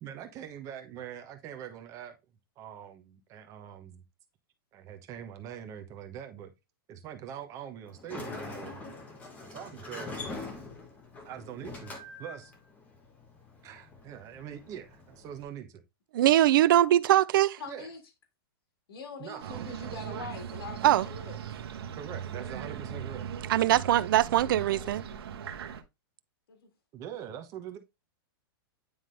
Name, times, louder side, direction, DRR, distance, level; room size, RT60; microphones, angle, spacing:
voice 1, 0.0-2.1 2.6-4.0 4.7-6.5 6.9-9.0 9.4-10.2 11.2-12.5 13.6-15.8 17.7-17.9 19.2-19.9 21.9-23.2 26.9-27.8, right 9 dB, 25° right, 1.0 m, -43 dB
Sliding door, 7.9-15.4, left 3 dB, 10° left, 1.2 m, -44 dB
voice 2, 16.2-17.6 20.8-21.1 23.5-25.0, right 13 dB, 60° right, 0.4 m, -22 dB
voice 3, 17.6-18.0 18.9-21.3 24.5-24.9 26.5-26.7, left 4 dB, 75° left, 1.9 m, -43 dB
sound 1, 19.4-25.8, right 8 dB, 80° right, 1.1 m, -39 dB
9.4 x 3.6 x 3.3 m
supercardioid pair, 160°, 13 cm